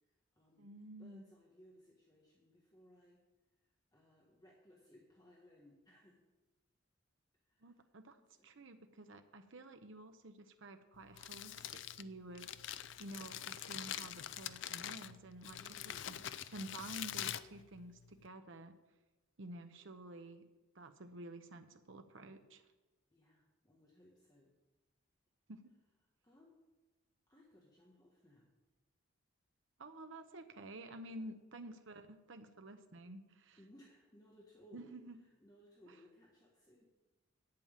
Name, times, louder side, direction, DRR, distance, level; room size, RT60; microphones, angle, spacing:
voice 1, 0.1-0.7 1.0-3.2 3.6-6.2 7.4-7.8 8.4-8.5 15.5-16.2 23.1-24.5 26.2-26.5 27.3-28.5 31.2-31.3 33.6-35.0 35.4-36.8, equal, 20° left, -3 dB, 1.4 m, -63 dB
voice 2, 0.6-1.2 7.6-12.5 13.0-15.6 16.1-18.7 19.4-20.4 20.7-22.6 25.5-25.7 29.8-33.6 34.7-35.2 35.9-36.0, right 1 dB, 65° right, 7 dB, 0.8 m, -51 dB
Crumpling crinkling, 11.0-18.3, left 11 dB, 65° left, 0.4 m, -45 dB
8.7 x 7.4 x 8.8 m, 1.1 s
head